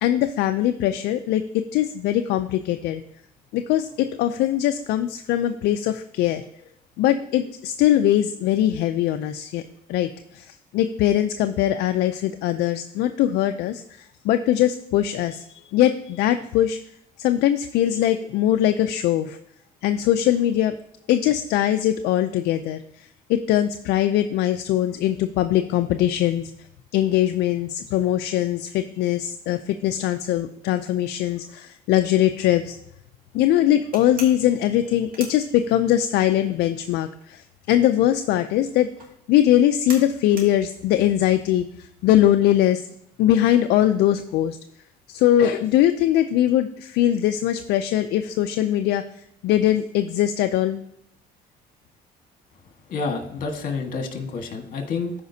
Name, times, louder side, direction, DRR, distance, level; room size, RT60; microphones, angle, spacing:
voice 1, 0.0-3.0 3.5-6.4 7.0-9.6 9.9-10.1 10.3-16.8 17.2-19.4 19.8-20.7 21.1-22.8 23.3-26.5 26.9-32.8 33.3-38.9 39.3-41.7 42.0-42.8 43.2-44.6 45.1-49.0 49.4-50.8, left 12 dB, 75° left, 8 dB, 0.4 m, -21 dB
sound 1, 33.9-36.1 36.4-42.2, right 3 dB, 55° right, 2.2 m, -41 dB
voice 2, 52.9-55.1, left 4 dB, 55° left, 4 dB, 1.6 m, -29 dB
13.5 x 5.0 x 2.7 m, 0.74 s
cardioid pair, 110°, 17 cm